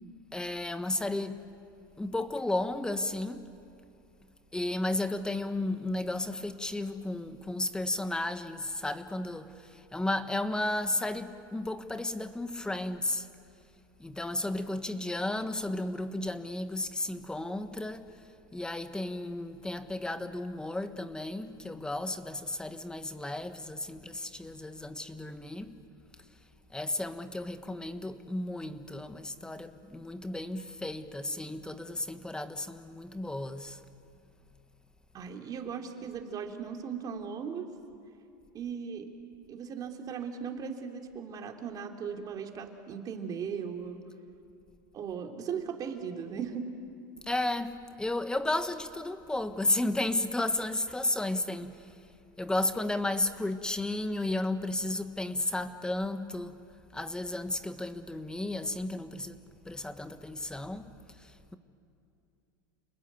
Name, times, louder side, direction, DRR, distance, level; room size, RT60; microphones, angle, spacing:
voice 1, 0.3-1.4 2.0-3.5 4.5-13.3 14.0-18.2 18.5-25.8 26.7-33.8 47.2-51.9 52.4-56.6 56.9-61.6, left 2 dB, 5° left, 1.4 m, -33 dB
voice 2, 35.1-37.7 38.5-39.1 39.5-44.0 44.9-46.7, right 7 dB, 35° right, 3.2 m, -38 dB
30.0 x 20.5 x 9.4 m
supercardioid pair, 120°, 11 cm